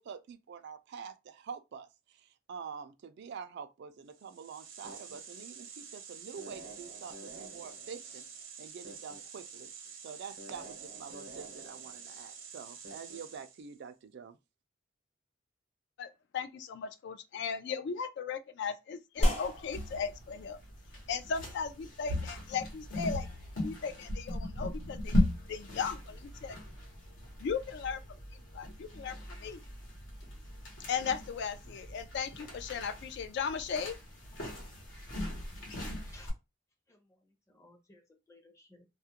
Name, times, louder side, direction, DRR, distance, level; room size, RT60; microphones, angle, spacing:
voice 1, 0.0-8.2 8.6-9.7 10.0-14.4, right 6 dB, 60° right, 0.3 m, -46 dB
sound 1, 4.1-13.7, right 5 dB, 80° right, 0.8 m, -47 dB
voice 2, 16.0-20.6 21.1-23.3 23.6-25.2 25.5-26.6 27.4-28.2 28.5-29.6 30.9-34.0, left 6 dB, 60° left, 0.3 m, -37 dB
sound 2, 19.2-36.3, left 1 dB, 80° left, 1.0 m, -38 dB
sound 3, 19.2-27.9, equal, 35° left, 0.9 m, -39 dB
voice 3, 36.9-38.9, left 2 dB, 15° left, 0.6 m, -59 dB
2.3 x 2.1 x 2.8 m
head